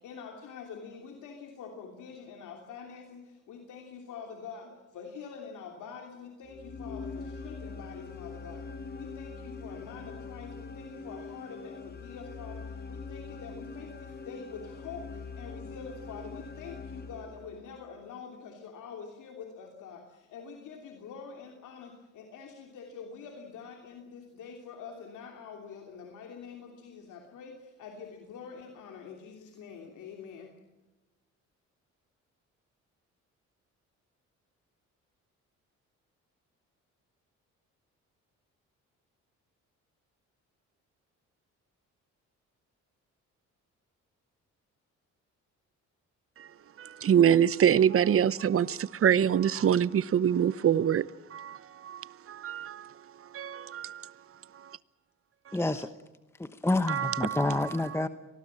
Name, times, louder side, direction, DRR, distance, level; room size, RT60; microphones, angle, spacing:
voice 1, 0.0-30.6, left 6 dB, 80° left, 3.1 m, -46 dB
sound 1, 6.4-17.8, left 4 dB, 30° left, 2.1 m, -43 dB
voice 2, 46.8-52.9 53.3-54.1 56.9-57.6, right 9 dB, 45° right, 0.8 m, -25 dB
voice 3, 55.5-55.9 56.4-58.1, left 2 dB, 10° left, 1.0 m, -28 dB
25.0 x 20.0 x 7.5 m
cardioid pair, 90°, 30 cm